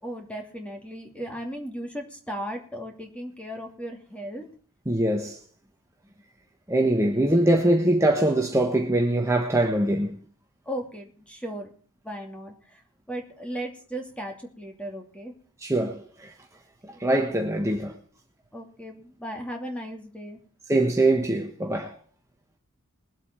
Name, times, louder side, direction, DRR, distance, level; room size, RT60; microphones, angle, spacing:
voice 1, 0.0-4.4 7.1-7.3 10.7-11.7 12.0-12.8 13.1-15.3 16.8-17.0 18.5-20.4, equal, 5° left, 2.6 m, -36 dB
voice 2, 4.9-5.4 6.7-10.2 15.6-16.3 16.8-18.0 20.7-21.9, right 1 dB, 15° right, 1.3 m, -23 dB
21.5 x 8.1 x 4.5 m
head